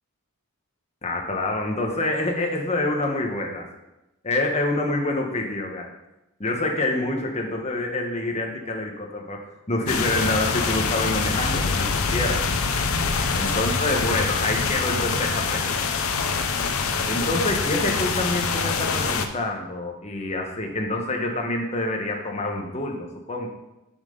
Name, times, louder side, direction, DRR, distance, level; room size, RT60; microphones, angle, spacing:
voice 1, 1.0-3.7 4.2-5.9 6.4-12.4 13.3-15.9 17.1-23.5, left 2 dB, 30° left, 1 dB, 1.2 m, -27 dB
sound 1, 9.9-19.3, left 5 dB, 65° left, 0.7 m, -25 dB
6.9 x 5.8 x 5.4 m, 0.92 s
head